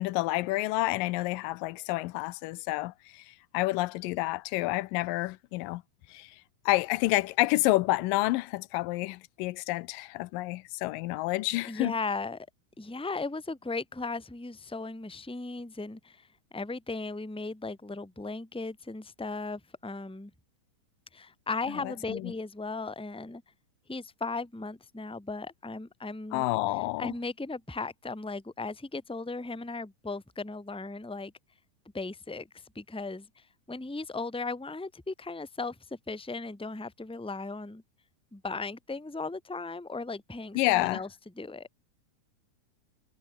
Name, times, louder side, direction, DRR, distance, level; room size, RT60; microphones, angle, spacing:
voice 1, 0.0-5.8 6.1-11.9 21.8-22.3 26.3-27.1 40.6-41.0, left 19 dB, 90° left, 2.3 m, -29 dB
voice 2, 11.6-12.5 12.8-16.3 16.5-20.3 21.1-23.4 23.9-26.4 27.0-31.3 31.9-32.5 32.7-35.8 36.1-37.8 38.3-41.1 41.4-41.7, left 3 dB, ahead, 1.8 m, -37 dB
omnidirectional pair, 3.9 m